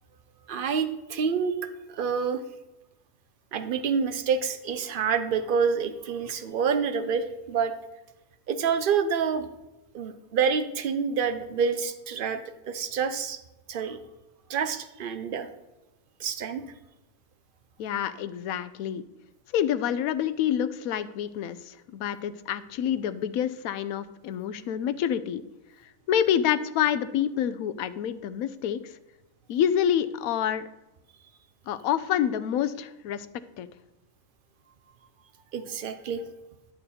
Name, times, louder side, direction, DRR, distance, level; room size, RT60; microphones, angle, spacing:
voice 1, 0.5-1.6 1.9-2.4 3.5-7.7 8.5-9.5 9.9-13.4 13.7-14.0 14.5-15.5 16.2-16.6 35.5-36.3, right 6 dB, 50° right, 9 dB, 0.8 m, -27 dB
voice 2, 17.8-19.0 19.5-25.4 26.1-28.8 29.5-30.7 31.7-33.3 33.6-33.7, left 9 dB, 85° left, 13 dB, 1.0 m, -27 dB
11.5 x 6.6 x 4.2 m, 0.98 s
omnidirectional pair, 1.5 m